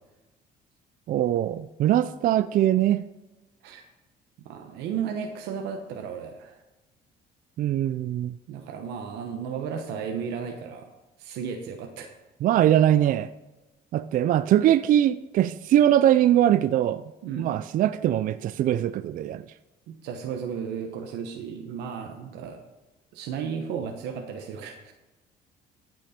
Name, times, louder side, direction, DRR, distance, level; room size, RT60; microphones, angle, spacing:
voice 1, 1.1-3.0 7.6-8.3 12.4-13.3 13.9-17.0 17.4-19.4, right 11 dB, 55° right, 14 dB, 0.4 m, -22 dB
voice 2, 4.4-6.6 8.5-10.9 11.2-12.1 17.2-17.5 19.9-22.6 23.1-24.9, right 7 dB, 90° right, 4 dB, 1.0 m, -34 dB
15.5 x 6.2 x 4.3 m, 1.1 s
cardioid pair, 110°, 17 cm